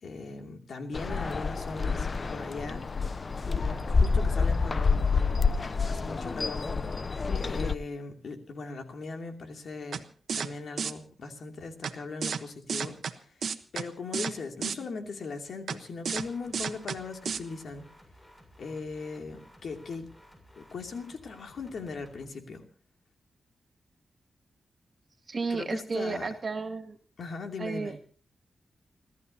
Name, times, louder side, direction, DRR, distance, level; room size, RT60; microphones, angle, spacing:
voice 1, 0.0-2.8 3.5-7.1 7.4-10.0 10.3-13.3 13.7-17.8 18.6-20.1 20.6-22.6 25.5-26.3 27.2-27.9, left 4 dB, 75° left, 4 dB, 2.7 m, -39 dB
sound 1, 0.9-7.8, left 4 dB, 45° left, 0.7 m, -28 dB
sound 2, 9.9-10.0 10.3-10.5 10.8-10.9 11.8-11.9 12.2-12.4 12.7-13.1 13.4-13.8 14.1-14.3 14.6-14.8 15.7-15.8 16.1-16.2 16.5-17.0 17.3-17.4, right 6 dB, 80° right, 1.1 m, -31 dB
sound 3, 16.1-22.2, equal, 20° left, 7.1 m, -56 dB
voice 2, 25.3-27.0 27.6-28.0, right 4 dB, 50° right, 7 dB, 2.3 m, -32 dB
30.0 x 13.0 x 2.8 m, 0.40 s
cardioid pair, 70°, 0 cm